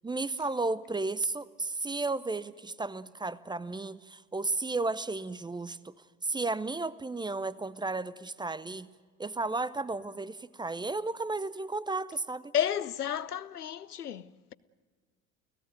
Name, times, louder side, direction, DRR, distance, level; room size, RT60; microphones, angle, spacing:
voice 1, 0.0-5.9 6.2-8.9 9.2-12.5, right 3 dB, 10° right, 0.6 m, -33 dB
voice 2, 12.5-14.5, left 9 dB, 85° left, 0.7 m, -32 dB
30.0 x 16.5 x 9.2 m
figure-of-eight pair, 60°, 45 cm